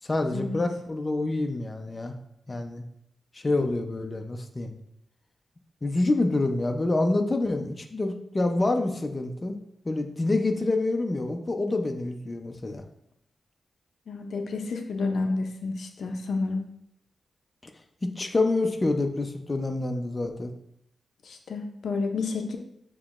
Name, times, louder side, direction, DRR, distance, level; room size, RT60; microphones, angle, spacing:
voice 1, 0.0-2.2 2.5-2.8 3.3-4.7 5.8-9.6 9.8-12.8 17.6-17.7 18.0-20.5, left 2 dB, 30° left, 4 dB, 0.5 m, -27 dB
voice 2, 14.1-16.6 21.2-22.6, left 3 dB, 80° left, 5 dB, 0.5 m, -30 dB
7.0 x 3.0 x 2.4 m, 0.74 s
wide cardioid pair, 90°, 0 cm